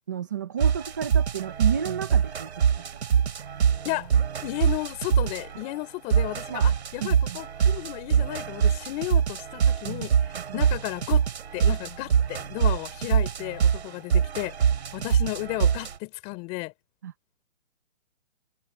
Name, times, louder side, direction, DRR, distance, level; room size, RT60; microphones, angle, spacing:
voice 1, 0.1-2.5 6.5-6.7 7.0-7.4 10.3-10.7 17.0-17.1, right 8 dB, 15° right, 0.6 m, -32 dB
sound 1, 0.6-5.6 6.1-15.9, right 7 dB, 60° right, 5.1 m, -24 dB
voice 2, 4.4-10.1 10.5-14.6 14.9-16.7, left 23 dB, 20° left, 4.1 m, -33 dB
hypercardioid pair, 170°, 37 cm